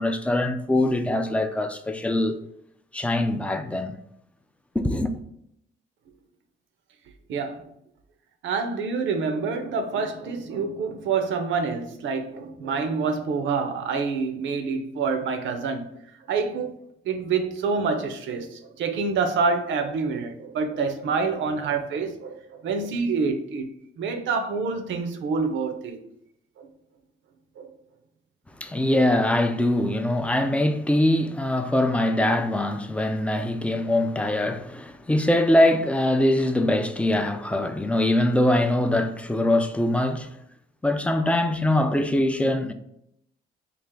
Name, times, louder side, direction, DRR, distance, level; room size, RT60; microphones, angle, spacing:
voice 1, 0.0-2.4 2.9-4.0 4.8-5.1 28.6-40.3 40.8-42.7, left 1 dB, 5° left, 0.3 m, -23 dB
voice 2, 7.3-7.6 8.4-15.9 16.3-16.7 17.0-23.7 24.0-26.0 26.6-26.7 27.6-27.7, right 4 dB, 70° right, 0.6 m, -27 dB
3.3 x 2.4 x 3.6 m
cardioid pair, 90°, 20 cm